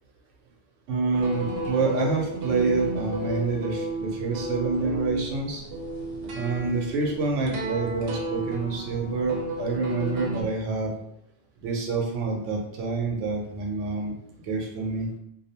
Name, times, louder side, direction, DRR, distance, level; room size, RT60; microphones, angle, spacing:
voice 1, 0.9-5.6 6.4-10.9 11.6-14.1 14.4-15.1, right 4 dB, 85° right, 1 dB, 0.9 m, -27 dB
sound 1, 1.1-10.4, right 1 dB, 65° right, 0.8 m, -33 dB
2.6 x 2.0 x 2.7 m, 0.75 s
omnidirectional pair, 1.2 m